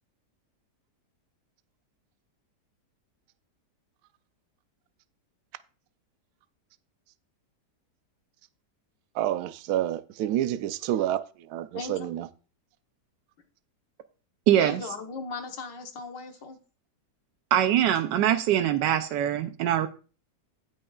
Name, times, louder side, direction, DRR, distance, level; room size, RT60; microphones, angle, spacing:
voice 1, 9.1-12.3, right 12 dB, 70° right, 1.0 m, -29 dB
voice 2, 11.7-12.1 14.6-16.6, left 4 dB, 80° left, 1.8 m, -37 dB
voice 3, 14.5-14.8 17.5-19.9, right 11 dB, 85° right, 1.3 m, -23 dB
17.0 x 6.2 x 2.4 m
omnidirectional pair, 1.9 m